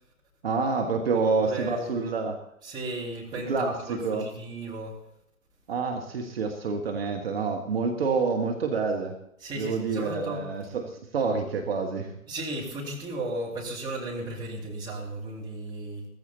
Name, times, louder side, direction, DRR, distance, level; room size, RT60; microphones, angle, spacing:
voice 1, 0.4-2.4 3.3-4.3 5.7-9.2 9.6-12.2, right 4 dB, 40° right, 3 dB, 1.8 m, -28 dB
voice 2, 1.1-2.1 2.6-5.0 9.4-10.5 12.3-16.1, right 2 dB, 10° right, -3 dB, 2.5 m, -35 dB
16.5 x 15.0 x 4.2 m, 0.74 s
figure-of-eight pair, 135°, 44 cm